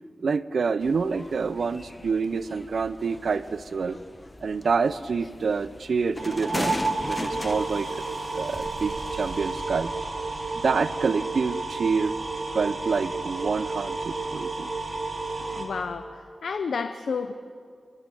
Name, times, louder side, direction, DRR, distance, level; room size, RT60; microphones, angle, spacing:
voice 1, 0.2-4.0 4.4-8.0 8.3-9.9 10.5-12.1 12.5-14.7, right 5 dB, 75° right, 14 dB, 0.7 m, -27 dB
sound 1, 0.8-8.9, left 1 dB, 25° left, 1.3 m, -38 dB
sound 2, 6.2-15.7, right 3 dB, 45° right, 4.4 m, -31 dB
sound 3, 8.5-12.4, right 1 dB, 5° left, 7.4 m, -45 dB
voice 2, 15.4-16.1 16.4-17.3, left 5 dB, 85° left, 8 dB, 0.8 m, -30 dB
30.0 x 10.5 x 9.0 m, 2.1 s
wide cardioid pair, 75°, 0 cm